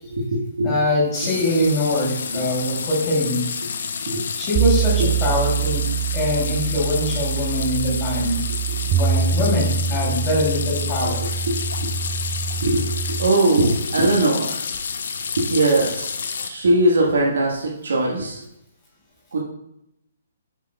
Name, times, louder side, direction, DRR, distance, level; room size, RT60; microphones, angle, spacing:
voice 1, 0.1-0.7 4.1-4.2 5.0-5.1 8.7-8.9 11.5-11.9 12.6-14.6 15.4-16.1 16.4-18.4 19.3-19.4, right 2 dB, 70° right, -3 dB, 1.7 m, -20 dB
voice 2, 0.6-3.4 4.4-8.4 8.8-11.2, left 1 dB, 25° left, -5 dB, 3.3 m, -23 dB
sound 1, 1.1-16.5, left 6 dB, 65° left, 0.8 m, -30 dB
sound 2, 4.6-13.3, right 8 dB, 20° right, 0.6 m, -24 dB
10.0 x 7.4 x 2.4 m, 0.81 s
figure-of-eight pair, 135°, 0 cm